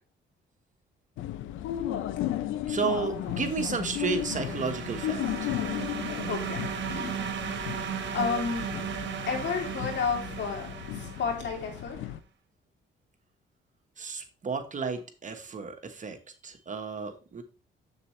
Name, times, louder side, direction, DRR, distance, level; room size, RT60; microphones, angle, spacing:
sound 1, 1.2-12.2, left 12 dB, 90° left, 0.6 m, -35 dB
voice 1, 2.7-5.6 14.0-16.2 16.4-17.4, right 5 dB, 40° right, 7 dB, 1.3 m, -32 dB
sound 2, 3.2-11.8, right 9 dB, 65° right, 1.3 m, -36 dB
voice 2, 6.3-6.6 6.9-7.2 8.1-8.7 9.3-10.7 10.9-12.0, left 5 dB, 65° left, 2 dB, 2.9 m, -31 dB
7.4 x 6.9 x 3.2 m, 0.34 s
cardioid pair, 90°, 20 cm